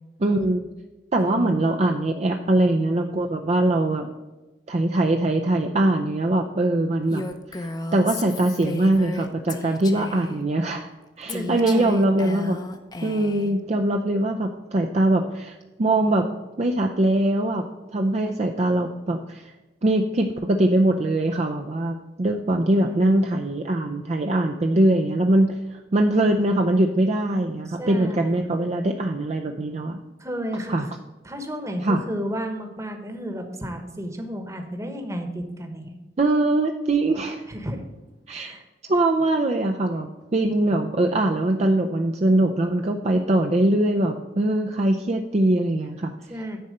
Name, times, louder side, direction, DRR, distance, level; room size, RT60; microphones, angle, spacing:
voice 1, 0.2-0.7 1.1-4.1 4.7-7.3 7.6-10.9 11.2-12.6 13.0-16.3 16.6-17.6 17.9-19.5 19.8-30.0 30.7-30.9 31.8-32.0 36.2-37.4 38.3-38.6 38.9-46.1, right 1 dB, 40° right, 3 dB, 0.5 m, -22 dB
voice 2, 1.2-1.6 11.3-12.2 22.8-23.4 27.7-28.4 30.2-30.9 31.2-35.9 37.5-37.8 38.3-38.6 46.3-46.6, equal, 15° right, 5 dB, 1.1 m, -32 dB
Female speech woman speaking, 7.1-10.4 11.3-13.5, left 2 dB, 25° left, 0.7 m, -33 dB
10.0 x 4.3 x 6.5 m, 1.1 s
head